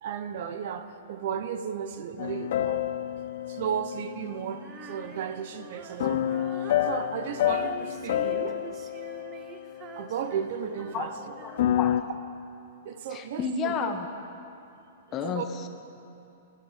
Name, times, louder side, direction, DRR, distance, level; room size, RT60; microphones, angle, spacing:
voice 1, 0.0-2.9 3.5-8.6 10.0-11.2 12.8-13.9 15.2-15.4, right 8 dB, 55° right, 10 dB, 0.9 m, -34 dB
sound 1, 2.2-4.9 6.0-10.4 11.3-12.0, left 11 dB, 60° left, 0.5 m, -29 dB
Female singing, 4.6-12.0, right 6 dB, 25° right, 0.8 m, -45 dB
voice 2, 11.4-12.0 13.1-14.1 15.1-15.7, left 6 dB, 25° left, 6 dB, 1.1 m, -31 dB
18.0 x 12.5 x 5.9 m, 2.7 s
hypercardioid pair, 155°, 0 cm